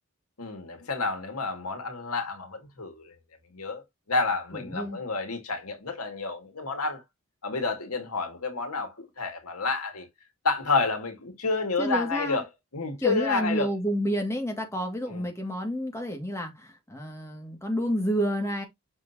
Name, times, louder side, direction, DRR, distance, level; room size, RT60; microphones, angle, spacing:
voice 1, 0.4-3.1 3.5-3.8 4.1-7.0 7.4-10.1 10.4-12.5 12.7-13.7 15.1-15.2, left 3 dB, 90° left, 2.0 m, -29 dB
voice 2, 4.5-5.0 11.8-12.4 13.0-18.6, equal, 10° left, 1.9 m, -29 dB
7.2 x 6.2 x 2.8 m
head